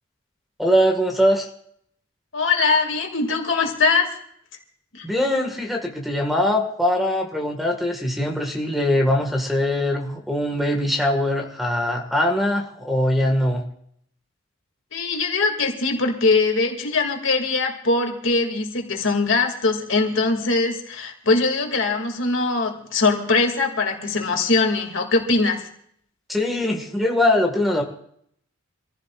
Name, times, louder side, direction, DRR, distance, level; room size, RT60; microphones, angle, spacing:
voice 1, 0.6-1.5 5.0-13.6 26.3-27.8, left 1 dB, ahead, 2 dB, 1.8 m, -22 dB
voice 2, 2.3-4.1 4.9-5.1 14.9-25.6, left 3 dB, 65° left, 3 dB, 2.5 m, -21 dB
26.0 x 15.5 x 2.5 m, 0.68 s
head